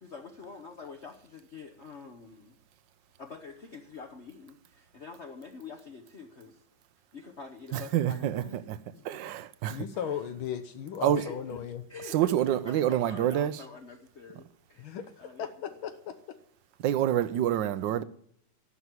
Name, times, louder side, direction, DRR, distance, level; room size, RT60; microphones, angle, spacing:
voice 1, 0.0-2.6 3.2-6.6 7.1-8.6 8.9-9.3 11.2-11.6 11.9-16.0, left 4 dB, 45° left, 0.9 m, -46 dB
voice 2, 7.7-8.8 9.0-9.9 11.0-11.2 12.1-13.5 16.8-18.0, right 11 dB, 70° right, 1.2 m, -27 dB
voice 3, 9.7-11.8 14.8-15.1 15.4-16.1, left 8 dB, 80° left, 1.7 m, -36 dB
14.0 x 6.2 x 9.6 m
omnidirectional pair, 2.3 m